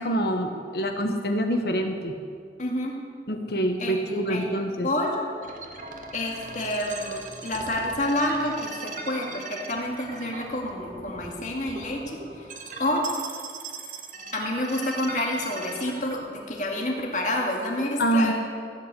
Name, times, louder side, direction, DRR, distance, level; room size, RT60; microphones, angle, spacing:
voice 1, 0.0-2.1 3.3-4.9 18.0-18.3, right 1 dB, 60° left, 4 dB, 1.2 m, -25 dB
voice 2, 2.6-2.9 3.8-4.5 4.8-5.3 6.1-12.5 12.8-13.0 14.3-18.3, left 1 dB, 45° left, -1 dB, 2.2 m, -29 dB
sound 1, 5.4-16.2, right 3 dB, 45° right, 1.4 m, -39 dB
15.0 x 8.2 x 8.3 m, 2.3 s
head